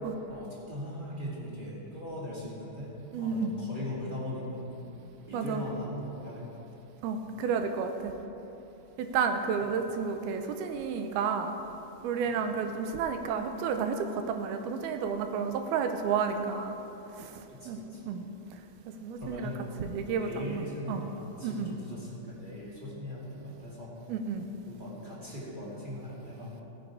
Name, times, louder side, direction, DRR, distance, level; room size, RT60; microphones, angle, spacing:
voice 1, 0.3-4.9 5.2-6.4 6.8-6.9 9.6-9.7 12.2-12.5 17.5-18.1 19.2-19.6 20.2-23.9 24.7-26.6, equal, 15° right, -7 dB, 2.0 m, -40 dB
voice 2, 3.1-3.5 5.3-5.6 7.0-8.1 9.0-11.5 12.0-16.8 17.2-17.8 18.1-18.3 19.0-19.5 19.8-21.0 21.4-21.7 24.1-24.4, right 6 dB, 85° right, 6 dB, 2.6 m, -31 dB
15.5 x 9.5 x 4.7 m, 3.0 s
omnidirectional pair, 4.5 m